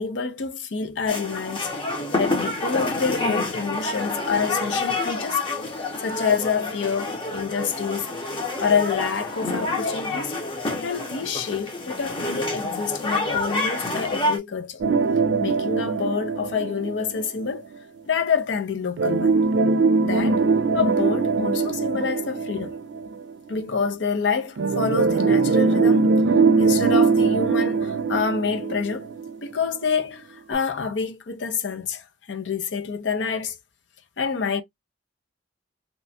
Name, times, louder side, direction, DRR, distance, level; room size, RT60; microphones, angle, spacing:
voice 1, 0.0-1.7 2.2-5.4 5.7-8.1 8.6-10.3 10.8-14.8 15.4-17.7 18.1-19.4 20.0-20.4 20.7-22.7 23.5-26.1 26.6-29.1 29.4-33.6 34.2-34.6, left 5 dB, 90° left, 0.6 m, -27 dB
sound 1, 1.1-14.4, left 2 dB, 30° left, 0.7 m, -28 dB
sound 2, 14.8-17.5 19.0-23.3 24.6-29.5 29.8-29.9 30.5-30.6, right 4 dB, 90° right, 0.4 m, -21 dB
2.9 x 2.1 x 2.7 m
head